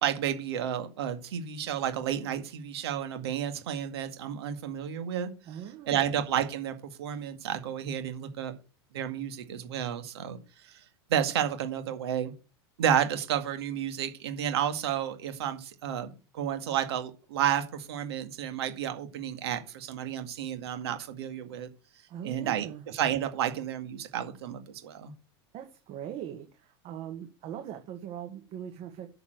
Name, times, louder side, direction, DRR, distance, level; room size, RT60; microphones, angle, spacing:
voice 1, 0.0-5.3 5.9-8.5 8.9-10.8 11.1-12.3 12.8-21.7 22.2-25.1, right 9 dB, 75° right, 8 dB, 2.0 m, -31 dB
voice 2, 5.5-6.1 22.1-22.8 25.5-29.1, right 10 dB, 50° right, 5 dB, 1.9 m, -41 dB
7.0 x 7.0 x 7.8 m, 0.33 s
hypercardioid pair, 95°, 13 cm